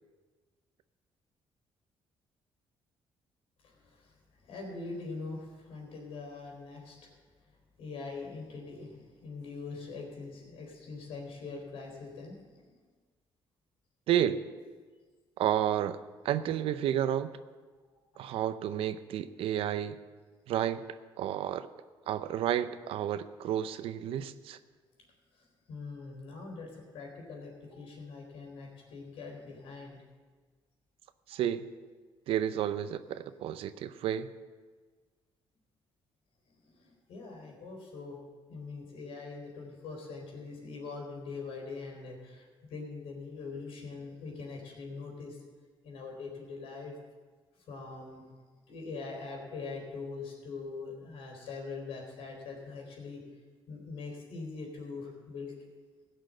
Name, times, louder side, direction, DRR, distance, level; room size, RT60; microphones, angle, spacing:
voice 1, 3.6-4.1 4.4-7.1 7.8-12.6 25.3-30.0 36.6-38.2 38.5-45.4 45.8-46.9 47.7-48.2 48.7-53.2 53.7-55.5, left 4 dB, 90° left, 0 dB, 4.0 m, -43 dB
voice 2, 14.1-14.4 15.4-17.3 18.2-20.0 20.5-21.7 22.1-24.6 31.3-31.7 32.3-34.3, right 10 dB, 80° right, 13 dB, 0.6 m, -31 dB
16.5 x 6.3 x 7.6 m, 1.4 s
cardioid pair, 105°, 9 cm